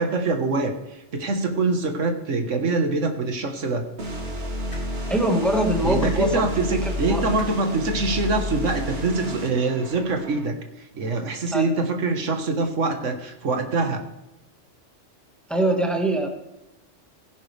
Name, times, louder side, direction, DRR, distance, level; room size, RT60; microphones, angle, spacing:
voice 1, 0.0-3.8 5.8-14.0, right 3 dB, 85° right, 5 dB, 1.7 m, -24 dB
sound 1, 4.0-10.5, equal, 55° right, 2.0 m, -31 dB
sound 2, 4.7-4.9 6.0-6.1 7.4-7.5 8.7-8.8 10.0-10.1, left 2 dB, 35° left, 2.1 m, -39 dB
voice 2, 5.1-6.5 7.1-7.2 11.5-11.6 15.5-16.3, right 1 dB, ahead, 3 dB, 1.6 m, -22 dB
16.5 x 10.5 x 3.4 m, 0.92 s
omnidirectional pair, 1.2 m